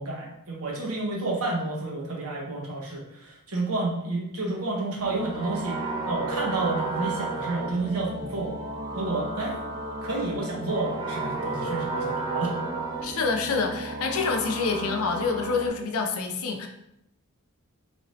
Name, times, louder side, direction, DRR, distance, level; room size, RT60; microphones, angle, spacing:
voice 1, 0.0-5.8 6.1-8.5 8.9-9.6 10.0-12.5, right 2 dB, 80° right, -2 dB, 0.9 m, -30 dB
sound 1, 5.0-15.7, right 2 dB, 20° right, 0.5 m, -32 dB
voice 2, 13.0-16.7, left 4 dB, 80° left, 4 dB, 0.5 m, -27 dB
3.1 x 2.7 x 3.0 m, 0.83 s
head